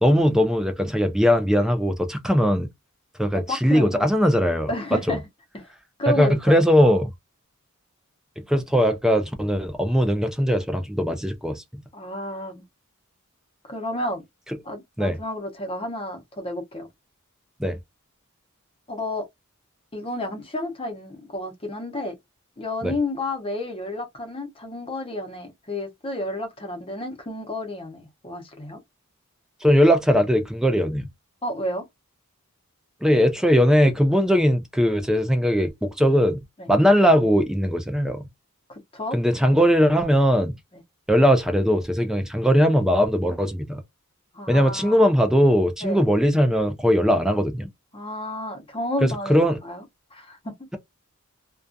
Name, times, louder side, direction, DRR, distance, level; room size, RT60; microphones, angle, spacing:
voice 1, 0.0-2.7 3.2-4.7 5.1-5.2 6.2-7.1 8.5-11.6 15.0-15.2 17.6-17.8 22.8-22.9 29.6-31.1 33.0-36.4 36.7-38.2 39.1-40.5 41.1-43.8 44.5-47.7 49.3-49.6, equal, 5° right, 0.3 m, -20 dB
voice 2, 3.3-4.0 4.7-5.2 5.5-5.7 6.0-6.6 11.9-12.6 13.6-14.2 14.6-16.9 18.9-19.3 19.9-22.1 22.6-28.8 31.4-31.8 36.6-36.7 38.7-39.2 44.3-45.0 45.8-46.0 47.9-49.8 50.1-50.7, left 1 dB, 25° left, 0.7 m, -31 dB
2.3 x 2.2 x 2.5 m
head